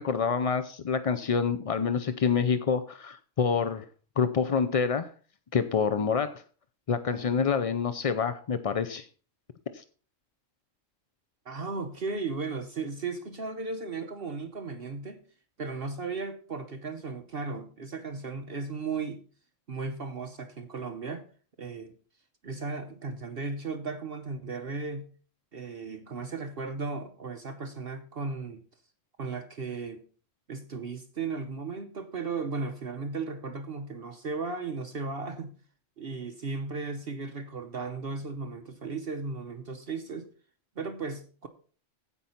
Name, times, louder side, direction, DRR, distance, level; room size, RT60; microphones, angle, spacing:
voice 1, 0.0-3.8 4.2-5.1 5.5-6.4 6.9-9.1 9.7-9.8, left 6 dB, 55° left, 10 dB, 0.3 m, -27 dB
voice 2, 11.4-15.2 15.6-19.2 19.7-21.3 21.6-21.9 22.4-25.1 25.5-28.6 29.2-30.0 30.5-35.5 36.0-40.3 40.8-41.5, right 4 dB, 50° right, 7 dB, 1.0 m, -36 dB
15.5 x 5.4 x 4.3 m, 0.40 s
omnidirectional pair, 1.3 m